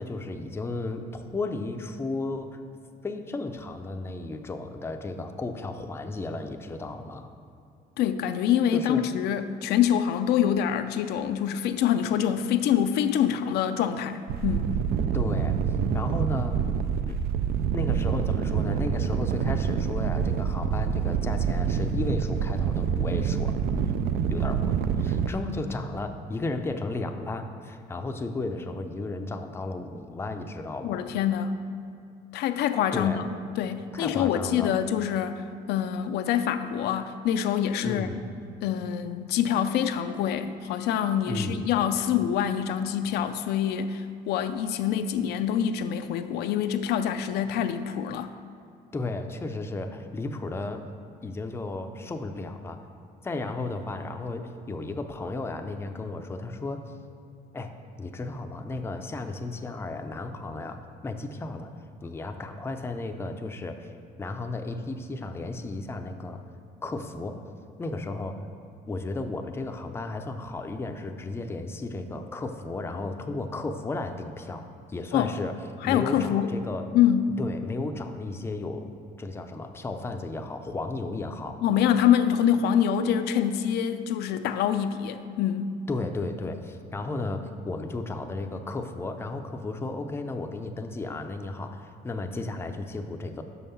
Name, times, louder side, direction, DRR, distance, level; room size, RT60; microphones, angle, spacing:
voice 1, 0.0-2.6 3.0-7.3 8.7-9.0 15.1-15.6 15.9-16.6 17.1-17.2 17.7-24.0 24.3-31.1 32.9-33.2 33.9-34.7 37.8-38.3 41.3-41.7 48.9-50.9 51.2-52.8 53.2-56.8 57.5-57.7 58.0-61.7 62.0-63.9 64.2-66.4 66.8-67.4 67.8-68.4 68.9-75.6 75.8-76.9 77.4-78.9 79.2-81.6 85.9-93.4, left 2 dB, 15° left, 6 dB, 0.5 m, -34 dB
voice 2, 8.0-14.7 30.8-31.5 32.3-38.1 38.6-48.3 75.1-75.3 75.8-76.5 76.9-77.4 81.6-85.7, left 9 dB, 75° left, 9 dB, 0.4 m, -25 dB
sound 1, 14.3-25.3, right 7 dB, 70° right, 0.4 m, -26 dB
6.2 x 5.5 x 5.6 m, 2.5 s
cardioid pair, 110°, 17 cm